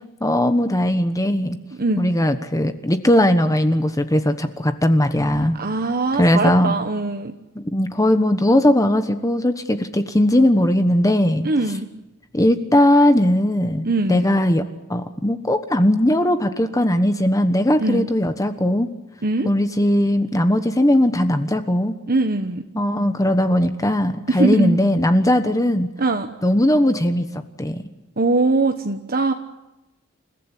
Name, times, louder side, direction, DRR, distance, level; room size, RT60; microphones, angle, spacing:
voice 1, 0.2-1.6 2.0-5.6 6.2-6.8 7.6-11.5 12.3-14.6 14.9-18.9 19.4-21.9 22.7-25.9 26.4-27.2 27.6-27.8, left 1 dB, 15° left, 8 dB, 1.2 m, -18 dB
voice 2, 5.4-7.3 11.4-11.9 13.8-14.3 17.8-18.1 19.2-19.5 22.1-22.6 24.3-24.8 26.0-26.3 28.2-29.3, right 3 dB, 45° right, 5 dB, 1.3 m, -21 dB
29.0 x 15.5 x 10.0 m, 1.0 s
head